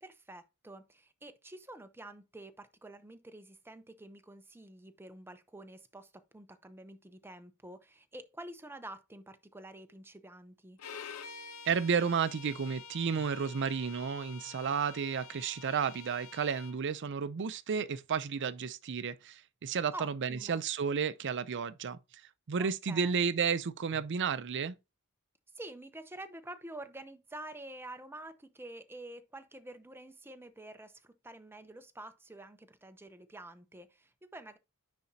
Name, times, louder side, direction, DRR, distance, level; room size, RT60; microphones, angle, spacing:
voice 1, 0.0-10.8 19.9-20.6 22.6-23.3 25.5-34.6, right 1 dB, 10° right, 0.7 m, -48 dB
Bowed string instrument, 10.8-16.8, left 6 dB, 80° left, 0.8 m, -48 dB
voice 2, 11.7-22.0 22.5-24.7, right 6 dB, 55° right, 0.5 m, -32 dB
9.7 x 4.2 x 2.8 m
head